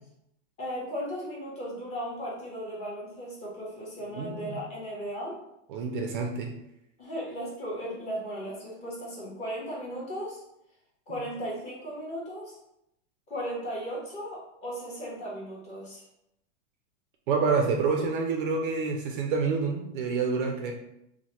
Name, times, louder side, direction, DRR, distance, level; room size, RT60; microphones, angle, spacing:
voice 1, 0.6-5.4 7.0-10.4 11.1-12.6 13.3-16.0, equal, 20° left, -5 dB, 0.8 m, -36 dB
voice 2, 4.1-4.6 5.7-6.5 17.3-20.7, right 5 dB, 45° right, 2 dB, 0.4 m, -28 dB
2.9 x 2.1 x 3.0 m, 0.81 s
hypercardioid pair, 140°, 36 cm